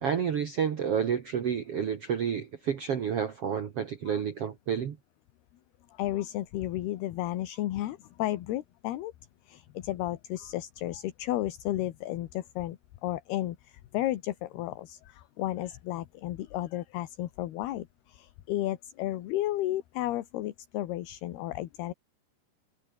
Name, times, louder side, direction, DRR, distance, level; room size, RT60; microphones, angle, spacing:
voice 1, 0.0-5.0, right 7 dB, 85° right, 1.3 m, -30 dB
voice 2, 5.9-9.1 9.5-21.9, left 14 dB, 70° left, 3.0 m, -33 dB
omnidirectional pair, 5.3 m